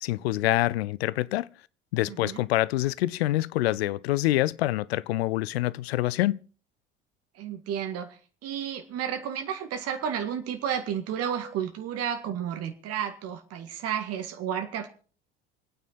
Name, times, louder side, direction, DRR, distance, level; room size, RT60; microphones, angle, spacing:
voice 1, 0.0-1.5 1.9-6.4, left 16 dB, 70° left, 0.6 m, -26 dB
voice 2, 2.1-2.4 7.3-14.9, right 8 dB, 45° right, 2.0 m, -32 dB
27.5 x 9.2 x 4.2 m
figure-of-eight pair, 65°, 33 cm